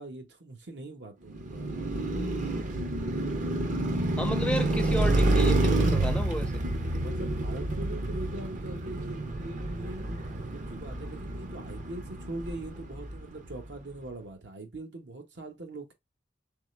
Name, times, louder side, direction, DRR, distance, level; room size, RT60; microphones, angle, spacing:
voice 1, 0.0-2.1 6.9-15.9, right 2 dB, 75° right, 1.0 m, -42 dB
Car passing by, 1.3-13.5, right 2 dB, 45° right, 0.6 m, -29 dB
voice 2, 4.2-6.5, left 1 dB, 5° left, 0.3 m, -32 dB
3.6 x 3.3 x 3.1 m
head